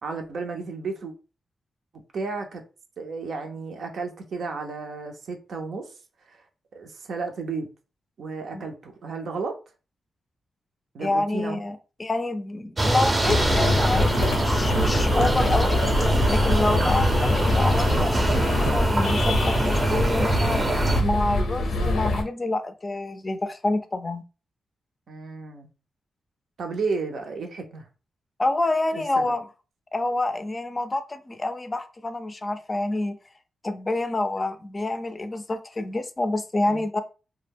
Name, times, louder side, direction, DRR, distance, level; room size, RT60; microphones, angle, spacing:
voice 1, 0.0-1.1 2.1-2.6 3.0-5.9 6.3-6.4 6.7-7.7 8.2-9.5 10.9-11.6 15.1-15.4 16.6-16.9 25.1-25.7 26.6-27.8 28.9-29.3 36.7-36.8, right 4 dB, 75° right, 0.6 m, -33 dB
voice 2, 11.0-15.8 16.3-20.7 21.0-24.2 28.4-29.4 29.9-33.2 33.6-37.0, left 2 dB, 30° left, 0.4 m, -27 dB
sound 1, 12.8-21.0, right 1 dB, 35° right, 0.6 m, -24 dB
sound 2, 13.2-22.2, left 2 dB, 85° left, 0.5 m, -24 dB
2.2 x 2.0 x 3.4 m
cardioid pair, 65°, 0 cm